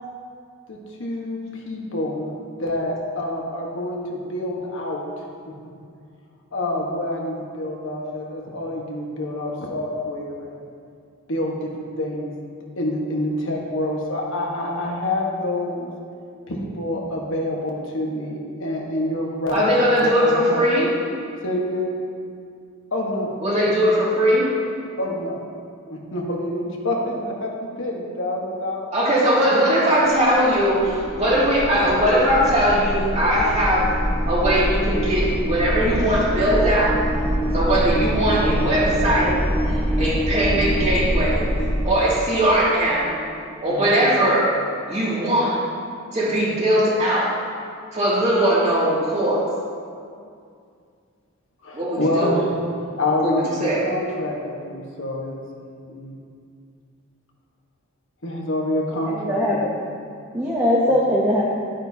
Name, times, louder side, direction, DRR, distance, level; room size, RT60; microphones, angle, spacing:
voice 1, 0.7-1.4 1.6-5.0 5.5-5.6 6.5-10.5 11.3-11.7 12.0-12.3 12.8-15.9 16.5-19.5 20.0-20.6 21.4-22.0 22.9-23.3 25.0-25.4 25.9-28.9 29.4-29.7 43.6-43.9 51.6-52.6 53.0-55.3 55.9-56.1 58.2-59.6 60.5-60.6, left 1 dB, 60° left, -1 dB, 1.3 m, -27 dB
voice 2, 19.5-20.9 23.4-24.5 28.9-33.9 34.3-37.0 37.5-39.4 39.7-41.5 41.8-43.2 43.6-44.5 44.9-45.6 46.1-47.4 47.9-49.5 51.7-52.4 53.2-53.8, right 1 dB, 30° right, -7 dB, 2.4 m, -20 dB
sound 1, 30.0-41.9, equal, 10° left, 1.2 m, -24 dB
voice 3, 59.1-59.7 60.3-61.4, left 1 dB, 15° right, -5 dB, 0.8 m, -20 dB
11.5 x 8.9 x 2.8 m, 2.3 s
head